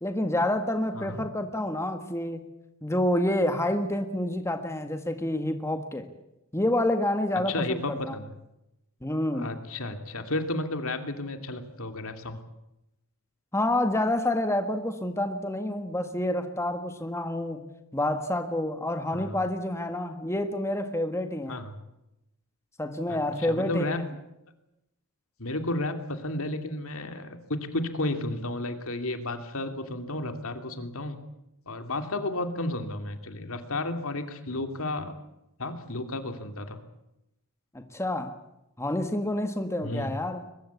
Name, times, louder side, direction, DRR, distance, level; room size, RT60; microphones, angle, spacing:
voice 1, 0.0-2.5 2.8-6.1 6.5-8.0 9.0-9.5 13.5-21.6 22.8-23.9 37.7-38.4 38.8-40.4, left 1 dB, 15° left, 7 dB, 1.6 m, -28 dB
voice 2, 0.9-1.3 7.3-8.3 9.3-12.4 19.1-19.3 21.5-21.7 23.1-23.2 23.5-24.0 25.4-31.2 31.7-35.1 35.6-36.8 39.8-40.1, left 2 dB, 70° left, 7 dB, 2.8 m, -32 dB
22.5 x 22.0 x 8.3 m, 0.87 s
head